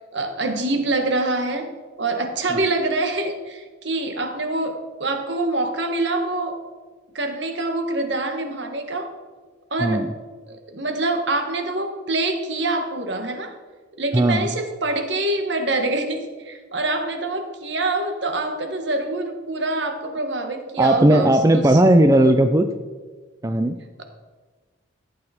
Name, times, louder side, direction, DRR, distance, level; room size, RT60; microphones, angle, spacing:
voice 1, 0.1-1.7 2.0-6.6 7.1-9.1 9.7-10.1 10.5-13.5 14.0-21.8, right 2 dB, 65° right, 5 dB, 1.6 m, -25 dB
voice 2, 9.8-10.1 14.1-14.5 20.8-22.7 23.4-23.8, right 1 dB, 15° right, 8 dB, 0.4 m, -16 dB
15.0 x 8.8 x 4.3 m, 1.4 s
head